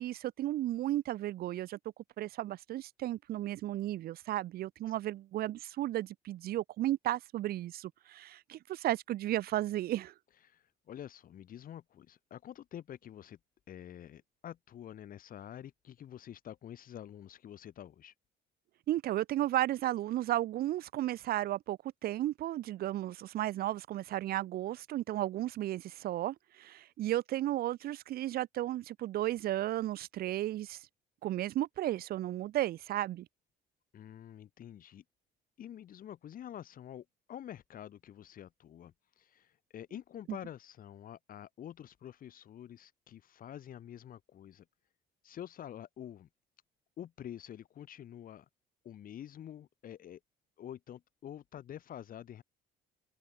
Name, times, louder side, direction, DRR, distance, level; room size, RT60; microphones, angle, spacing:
voice 1, 0.0-1.8 2.2-10.1 18.9-30.9 31.2-33.3 40.3-40.4, right 14 dB, 65° right, 0.9 m, -34 dB
voice 2, 10.4-13.4 13.7-18.1 33.9-35.0 35.6-44.6 45.2-46.3 47.0-48.5 48.8-50.2 50.6-52.4, left 10 dB, 55° left, 4.7 m, -48 dB
cardioid pair, 110°, 17 cm